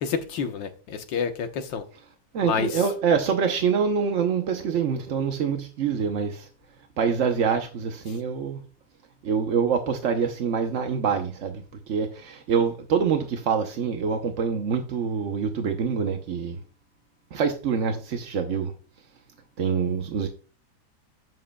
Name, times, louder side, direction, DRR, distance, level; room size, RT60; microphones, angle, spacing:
voice 1, 0.0-1.8 2.4-2.8, left 6 dB, 80° left, 1.7 m, -28 dB
voice 2, 2.3-6.5 7.0-8.6 9.2-16.6 17.3-18.7 19.6-20.3, right 6 dB, 55° right, 0.9 m, -25 dB
11.0 x 7.5 x 2.2 m
omnidirectional pair, 2.0 m